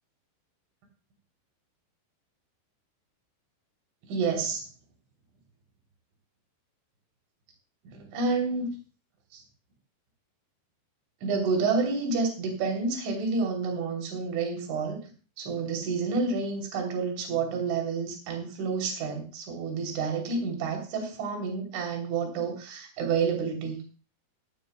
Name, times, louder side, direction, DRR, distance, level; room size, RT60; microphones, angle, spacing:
voice 1, 4.1-4.6 7.9-8.7 9.3-9.4 11.2-15.0 15.4-23.8, right 4 dB, 70° right, 2 dB, 5.5 m, -29 dB
17.5 x 14.5 x 2.2 m, 0.37 s
omnidirectional pair, 5.6 m